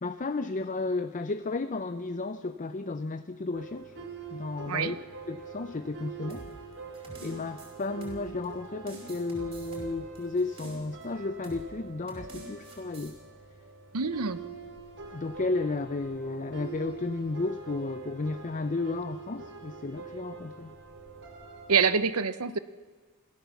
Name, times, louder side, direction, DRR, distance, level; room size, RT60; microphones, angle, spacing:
voice 1, 0.0-3.9 4.3-5.0 5.3-6.4 7.2-13.2 15.1-20.7, left 3 dB, 35° left, 10 dB, 0.6 m, -33 dB
sound 1, 3.5-21.9, right 5 dB, 55° right, 3.2 m, -45 dB
sound 2, 6.3-8.5 8.9-11.0 11.4-11.7 12.1-13.1, right 1 dB, 25° right, 5.4 m, -47 dB
voice 2, 13.9-14.4 21.7-22.6, right 5 dB, 80° right, 14 dB, 0.8 m, -26 dB
26.0 x 15.5 x 7.1 m, 1.5 s
head